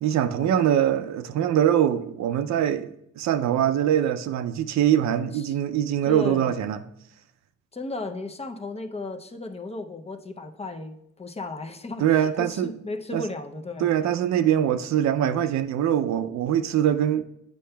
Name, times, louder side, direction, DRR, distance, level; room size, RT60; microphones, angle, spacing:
voice 1, 0.0-6.8 12.0-12.7 13.1-13.2 13.8-17.2, right 10 dB, 65° right, 0.4 m, -23 dB
voice 2, 6.0-6.5 7.7-13.9 14.3-14.7, left 2 dB, 20° left, 0.5 m, -35 dB
8.3 x 5.5 x 2.2 m
cardioid pair, 90°, 30 cm